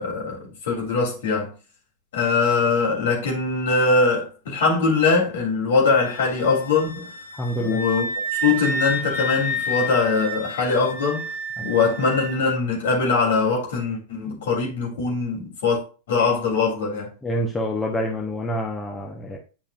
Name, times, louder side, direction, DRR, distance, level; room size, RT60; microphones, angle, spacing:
voice 1, 0.0-1.5 2.1-7.1 7.6-8.1 8.3-11.3 11.6-15.8 16.1-17.1, left 4 dB, 60° left, 3.2 m, -22 dB
Wind instrument woodwind instrument, 5.9-12.3, equal, 80° left, 3.0 m, -30 dB
voice 2, 7.3-7.8 17.2-19.4, equal, 10° left, 1.2 m, -27 dB
10.0 x 5.4 x 2.5 m
figure-of-eight pair, 90°, 0 cm